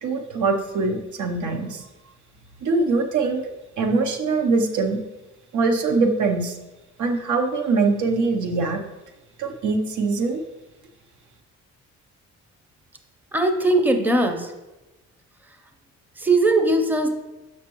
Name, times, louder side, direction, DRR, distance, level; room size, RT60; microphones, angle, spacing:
voice 1, 0.0-1.9 2.6-3.4 3.8-5.0 5.5-6.6 7.0-8.8 9.4-10.4, right 3 dB, 75° right, 3 dB, 0.8 m, -22 dB
voice 2, 13.3-14.5 15.5-15.6 16.2-17.1, right 2 dB, 5° right, 5 dB, 0.6 m, -20 dB
6.1 x 5.8 x 3.0 m, 1.1 s
cardioid pair, 90°, 30 cm